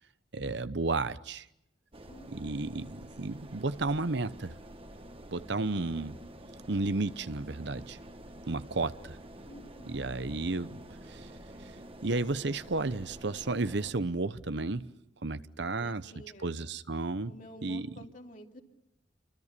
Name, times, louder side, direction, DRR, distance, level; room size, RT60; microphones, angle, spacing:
voice 1, 0.3-1.5 2.3-4.6 5.3-6.2 6.7-8.0 8.5-9.2 9.9-11.3 11.6-11.7 12.0-14.9 15.2-16.1 16.4-17.3 17.6-17.9, right 3 dB, 65° right, 0.9 m, -33 dB
sound 1, 1.9-13.9, right 1 dB, 30° right, 1.7 m, -48 dB
voice 2, 2.1-2.7 9.4-10.2 15.6-16.6 17.3-18.6, equal, 45° left, 2.8 m, -51 dB
29.5 x 24.5 x 6.8 m
head